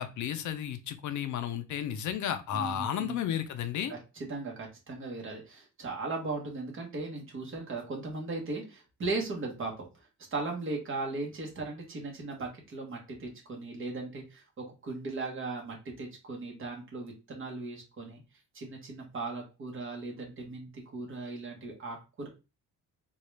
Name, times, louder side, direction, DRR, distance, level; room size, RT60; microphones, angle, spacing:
voice 1, 0.0-3.9, left 9 dB, 65° left, 9 dB, 0.5 m, -33 dB
voice 2, 2.5-3.2 3.9-18.2 18.5-22.3, right 3 dB, 40° right, 0 dB, 1.2 m, -38 dB
3.7 x 2.4 x 3.2 m, 0.29 s
cardioid pair, 175°, 32 cm